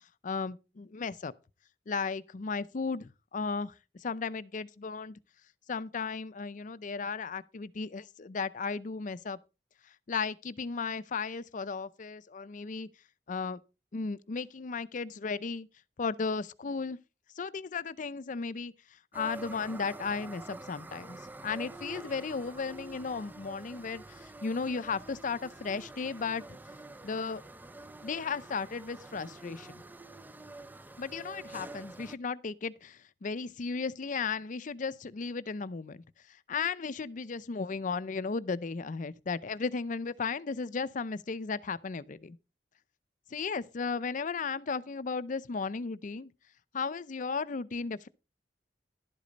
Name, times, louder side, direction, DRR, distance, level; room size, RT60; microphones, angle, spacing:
voice 1, 0.2-1.3 1.9-5.2 5.7-9.4 10.1-12.9 13.3-13.6 13.9-15.7 16.0-17.0 17.4-18.7 19.1-26.4 27.0-27.4 28.0-29.8 31.0-42.4 43.3-46.3 46.7-48.1, left 5 dB, 45° left, 0.5 m, -35 dB
sound 1, 19.1-32.2, right 2 dB, 10° right, 0.4 m, -47 dB
11.5 x 8.3 x 4.0 m
head